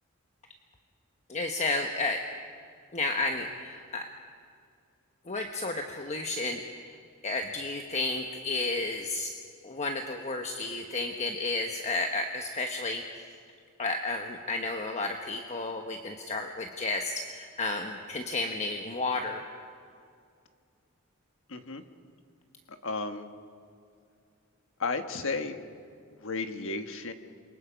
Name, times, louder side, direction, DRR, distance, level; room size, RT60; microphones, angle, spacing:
voice 1, 1.3-2.2 2.9-4.1 5.3-7.0 7.2-9.3 9.6-13.0 13.8-19.4, left 3 dB, 35° left, 4 dB, 1.1 m, -32 dB
voice 2, 21.5-21.8 22.7-23.3 24.8-25.6 26.2-27.1, left 3 dB, 65° left, 7 dB, 1.5 m, -33 dB
28.0 x 23.5 x 5.2 m, 2.3 s
head